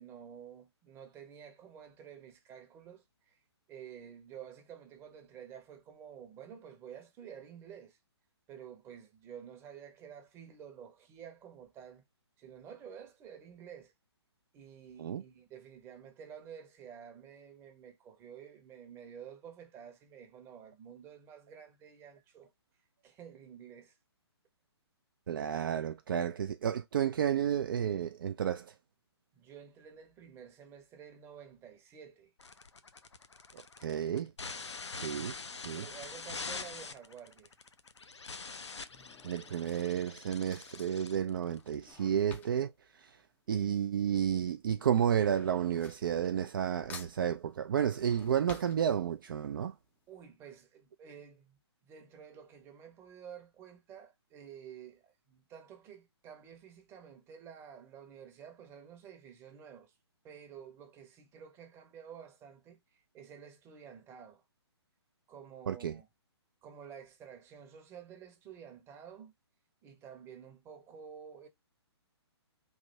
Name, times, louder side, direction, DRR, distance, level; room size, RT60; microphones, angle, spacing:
voice 1, 0.0-3.4 3.7-8.0 8.5-12.0 12.4-13.9 14.5-22.5 23.0-24.0 29.3-32.3 35.5-37.5 50.1-51.6 51.9-59.9 60.2-64.4 65.3-66.1 66.6-69.3 69.8-71.5, right 8 dB, 15° right, 0.8 m, -51 dB
voice 2, 25.3-28.7 33.8-34.3 34.9-35.3 35.6-35.8 39.2-42.7 43.0-43.1 43.5-49.7 65.7-65.9, right 9 dB, 50° right, 0.4 m, -31 dB
sound 1, 32.4-41.9, left 4 dB, 80° left, 0.6 m, -45 dB
Drawer open or close / Cutlery silverware, 36.9-37.3 38.1-44.0 44.3-46.6 46.9-49.4 49.8-49.9 50.2-50.3, left 5 dB, 10° left, 0.5 m, -54 dB
3.2 x 2.6 x 4.1 m
figure-of-eight pair, 130°, 14 cm